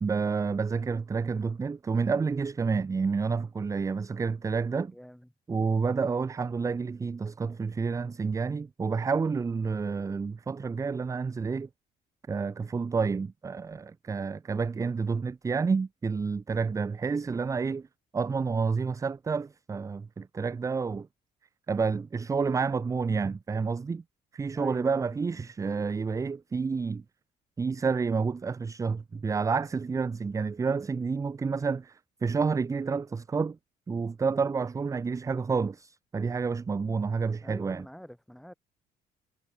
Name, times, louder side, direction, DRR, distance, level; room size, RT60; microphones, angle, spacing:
voice 1, 0.0-4.9 5.5-11.7 12.3-17.9 18.1-21.1 21.7-24.0 24.3-27.0 27.6-33.6 33.9-37.8, right 5 dB, 20° right, 0.5 m, -29 dB
voice 2, 4.8-5.3 5.9-6.1 24.5-25.5 37.4-38.5, equal, ahead, 6.2 m, -47 dB
cardioid pair, 110°, 17 cm